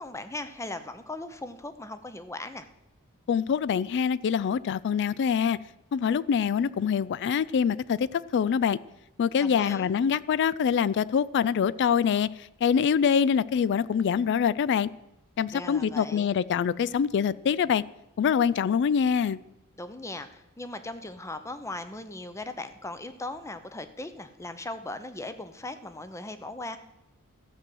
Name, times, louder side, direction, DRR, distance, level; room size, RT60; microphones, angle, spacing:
voice 1, 0.0-2.7 9.4-9.9 15.5-16.3 19.8-26.8, left 2 dB, 15° left, 0.7 m, -38 dB
voice 2, 3.3-5.6 5.9-8.1 8.3-8.8 9.2-12.3 12.6-14.9 15.4-17.8 18.2-19.4, left 7 dB, 55° left, 0.3 m, -24 dB
13.5 x 6.2 x 7.7 m
head